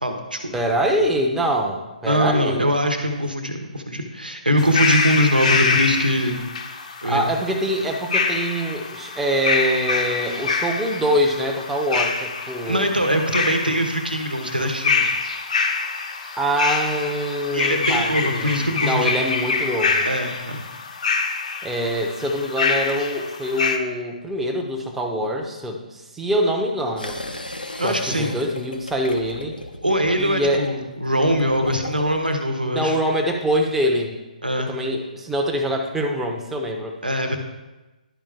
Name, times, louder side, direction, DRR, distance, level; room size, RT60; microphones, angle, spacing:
voice 1, 0.0-0.4 2.0-6.5 7.0-7.2 12.6-15.1 17.5-19.1 20.0-20.6 27.8-28.3 29.8-33.0 34.4-34.7 37.0-37.4, equal, 85° right, 5 dB, 1.1 m, -22 dB
voice 2, 0.5-2.7 7.0-12.9 16.4-20.1 21.6-27.2 27.8-29.5 30.2-30.7 32.7-34.1 34.7-37.0, equal, 5° right, 1 dB, 0.7 m, -24 dB
sound 1, 4.6-23.8, left 4 dB, 55° left, 0.8 m, -25 dB
sound 2, 27.0-32.3, left 2 dB, 90° left, 0.8 m, -35 dB
11.0 x 5.2 x 3.5 m, 1.1 s
figure-of-eight pair, 135°, 5 cm